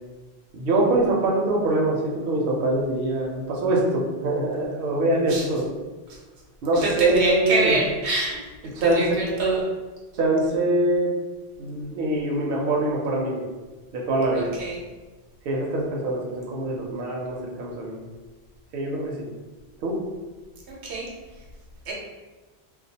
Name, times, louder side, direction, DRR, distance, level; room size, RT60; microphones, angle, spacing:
voice 1, 0.5-5.7 6.6-7.8 8.7-9.6 10.1-11.1 11.6-13.4 13.9-14.5 15.4-18.0 18.7-19.3 19.8-20.0, right 2 dB, 65° right, -2 dB, 0.7 m, -24 dB
voice 2, 6.8-8.4 8.8-9.6 14.4-14.8 20.8-21.1 21.9-22.0, right 2 dB, 90° right, -3 dB, 0.9 m, -26 dB
2.3 x 2.2 x 2.7 m, 1.3 s
omnidirectional pair, 1.1 m